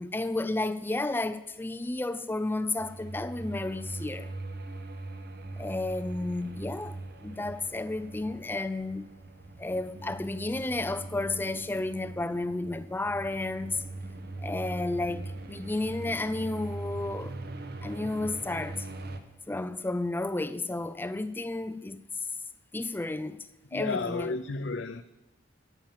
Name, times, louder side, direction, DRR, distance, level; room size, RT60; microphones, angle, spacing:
voice 1, 0.0-4.3 5.6-9.1 9.6-13.9 14.4-17.4 17.8-18.9 19.5-22.3 22.7-24.3, left 2 dB, 10° left, 0.4 m, -32 dB
sound 1, 2.8-19.2, right 2 dB, 60° right, 1.2 m, -41 dB
voice 2, 23.7-25.0, left 4 dB, 70° left, 0.6 m, -32 dB
13.5 x 10.5 x 7.4 m
head